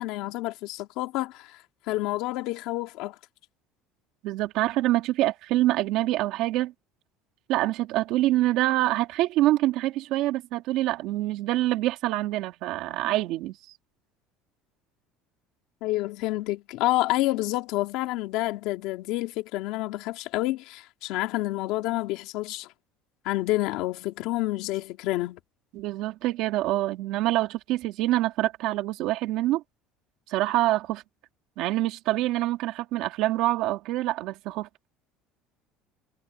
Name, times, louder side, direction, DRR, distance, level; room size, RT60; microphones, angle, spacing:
voice 1, 0.0-1.6 1.9-3.1 15.8-22.7 23.2-25.4, left 18 dB, 60° left, 2.3 m, -28 dB
voice 2, 4.2-6.7 7.5-13.5 25.7-29.6 30.3-31.0 31.6-34.7, right 16 dB, 55° right, 2.7 m, -25 dB
cardioid pair, 175°, 0 cm